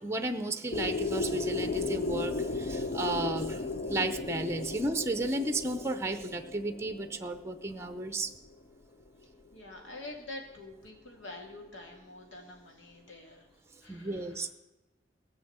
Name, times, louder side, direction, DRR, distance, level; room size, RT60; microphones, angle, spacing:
voice 1, 0.0-3.6 3.9-8.3 13.9-14.5, right 2 dB, 15° right, 8 dB, 0.7 m, -33 dB
sound 1, 0.7-8.5, left 3 dB, 40° left, 0.5 m, -35 dB
voice 2, 9.5-13.5 13.8-14.4, left 2 dB, 90° left, 1 dB, 2.8 m, -46 dB
17.0 x 6.2 x 8.0 m, 1.0 s
head